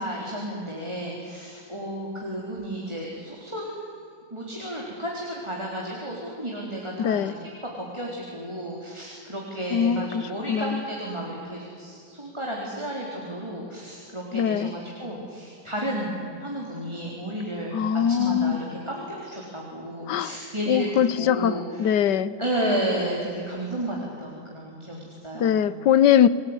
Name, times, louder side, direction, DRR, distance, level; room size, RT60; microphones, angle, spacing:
voice 1, 0.0-3.8 4.3-7.2 7.6-20.9 21.2-22.0 22.4-25.7, right 1 dB, 15° right, -3 dB, 4.2 m, -32 dB
voice 2, 7.0-7.3 9.7-10.2 10.5-10.8 14.3-14.7 17.7-18.6 20.1-20.3 20.7-22.4 25.4-26.3, left 9 dB, 85° left, 17 dB, 1.5 m, -21 dB
28.5 x 20.5 x 9.9 m, 2.6 s
omnidirectional pair, 1.8 m